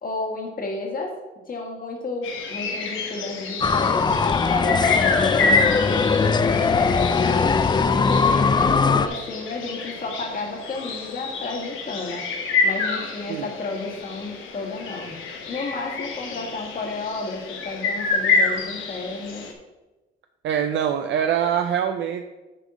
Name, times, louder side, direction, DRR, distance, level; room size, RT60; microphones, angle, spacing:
voice 1, 0.0-1.1 1.5-7.6 7.9-12.2 12.6-15.1 15.5-19.5, left 3 dB, 45° left, 1 dB, 1.8 m, -32 dB
sound 1, 2.2-19.5, left 4 dB, 85° left, 1.1 m, -28 dB
sound 2, 3.6-9.1, left 5 dB, 20° left, 0.3 m, -20 dB
voice 2, 20.4-22.3, right 8 dB, 70° right, 6 dB, 0.5 m, -24 dB
6.9 x 3.6 x 6.1 m, 1.1 s
cardioid pair, 90°, 20 cm